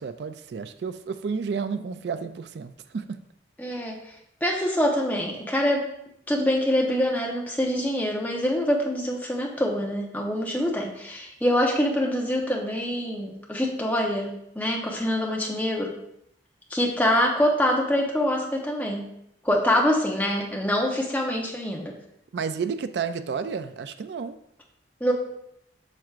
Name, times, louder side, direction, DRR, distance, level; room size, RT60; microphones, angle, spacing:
voice 1, 0.0-3.0 22.3-24.4, right 5 dB, 70° right, 10 dB, 0.4 m, -31 dB
voice 2, 3.6-4.0 4.4-5.9 6.3-15.9 16.7-19.0 19.4-21.9 25.0-25.1, left 1 dB, 10° left, -1 dB, 0.9 m, -25 dB
7.4 x 6.1 x 2.5 m, 0.77 s
head